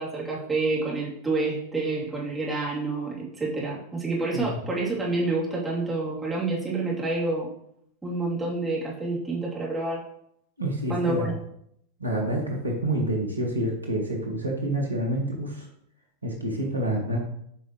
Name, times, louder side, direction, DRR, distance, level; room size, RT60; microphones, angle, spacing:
voice 1, 0.0-7.5 8.0-10.0 10.9-11.3, right 3 dB, 10° right, -6 dB, 3.2 m, -28 dB
voice 2, 10.6-11.4 12.0-15.7 16.2-17.2, right 1 dB, 80° right, 0 dB, 1.7 m, -28 dB
11.0 x 5.5 x 3.2 m, 0.72 s
figure-of-eight pair, 90°, 0 cm